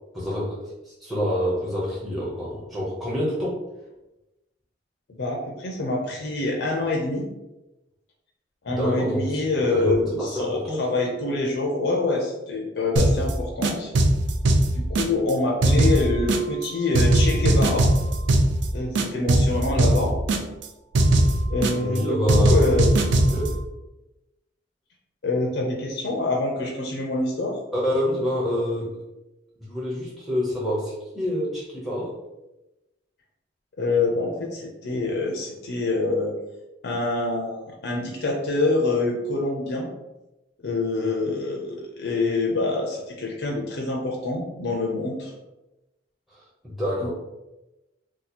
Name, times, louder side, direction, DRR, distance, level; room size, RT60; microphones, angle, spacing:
voice 1, 0.1-3.6 8.7-10.9 21.8-22.7 23.1-23.6 27.7-29.0 29.6-32.2 46.3-47.1, equal, ahead, -6 dB, 0.6 m, -27 dB
voice 2, 5.2-7.3 8.6-13.9 14.7-17.9 18.7-20.2 21.5-22.9 25.2-27.6 33.8-36.3 36.8-39.9 40.6-45.3, left 2 dB, 70° left, -1 dB, 0.5 m, -26 dB
sound 1, 13.0-13.3 13.6-15.3 15.6-16.7 16.9-18.7 19.0-20.7 20.9-22.0 22.3-23.5, right 1 dB, 75° right, 0.4 m, -20 dB
2.8 x 2.3 x 4.1 m, 0.99 s
head